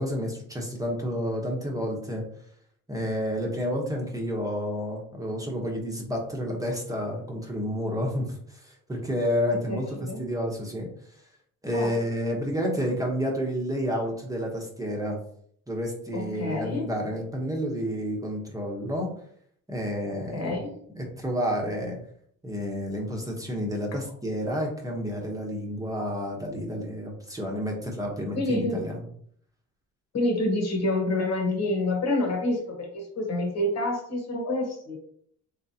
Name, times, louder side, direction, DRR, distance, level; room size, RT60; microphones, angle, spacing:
voice 1, 0.0-2.2 2.9-10.9 11.6-15.2 15.7-19.1 19.7-20.6 20.9-22.0 22.4-29.0, equal, 10° right, -1 dB, 0.9 m, -30 dB
voice 2, 9.7-10.2 11.7-12.0 16.1-16.9 20.3-20.7 23.9-24.0 28.3-28.8 30.1-35.0, left 2 dB, 60° left, 1 dB, 1.2 m, -28 dB
3.6 x 3.2 x 2.8 m, 0.63 s
cardioid pair, 90°, 30 cm